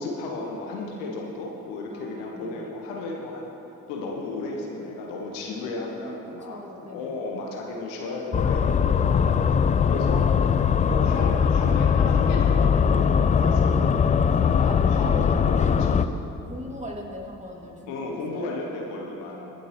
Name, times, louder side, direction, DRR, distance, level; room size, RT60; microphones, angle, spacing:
voice 1, 0.0-3.5 3.9-9.4 9.9-10.5 10.8-16.2 17.8-19.5, left 2 dB, 70° left, -1 dB, 1.4 m, -34 dB
voice 2, 1.9-2.7 6.4-7.1 8.7-9.7 14.6-14.8 16.4-18.6 19.3-19.5, equal, 15° right, -1 dB, 2.5 m, -41 dB
sound 1, 8.3-16.1, left 6 dB, 20° left, 0.3 m, -21 dB
22.5 x 7.9 x 3.1 m, 3.0 s
figure-of-eight pair, 45°, 43 cm